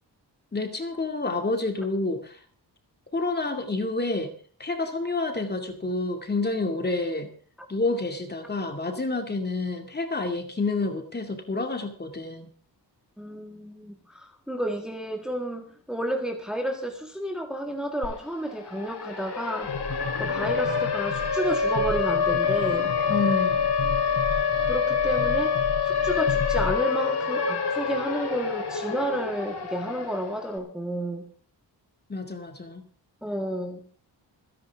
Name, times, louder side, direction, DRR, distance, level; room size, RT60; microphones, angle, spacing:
voice 1, 0.5-2.4 3.1-4.3 4.6-7.3 7.7-12.5 23.1-23.7 32.1-32.8, left 2 dB, 25° left, 5 dB, 2.4 m, -29 dB
voice 2, 13.2-19.7 20.2-22.9 24.6-25.6 25.8-31.3 33.2-33.8, right 1 dB, ahead, 2 dB, 1.8 m, -31 dB
Siren, 18.0-18.1 18.4-30.5, left 6 dB, 70° left, 3.9 m, -26 dB
sound 1, 19.6-26.8, left 4 dB, 50° left, 3.8 m, -34 dB
27.0 x 10.5 x 3.6 m, 0.43 s
wide cardioid pair, 165°, 42 cm